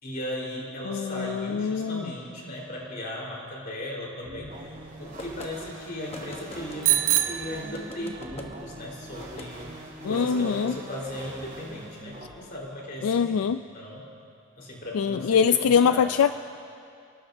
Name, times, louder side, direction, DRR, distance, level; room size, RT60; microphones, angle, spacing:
voice 1, 0.0-9.7 10.0-14.1 14.6-16.2, left 1 dB, 45° left, -3 dB, 4.0 m, -37 dB
voice 2, 0.9-2.0 10.0-10.7 13.0-13.6 14.9-16.3, left 7 dB, 85° left, 11 dB, 0.4 m, -23 dB
sound 1, 4.2-12.3, right 1 dB, 40° right, 5.3 m, -42 dB
sound 2, 5.2-5.5 6.1-7.1 7.7-8.5 9.2-9.5, left 1 dB, 30° left, 1.0 m, -42 dB
Bicycle bell, 6.8-8.4, right 13 dB, 60° right, 0.6 m, -26 dB
29.0 x 18.5 x 2.7 m, 2.5 s
head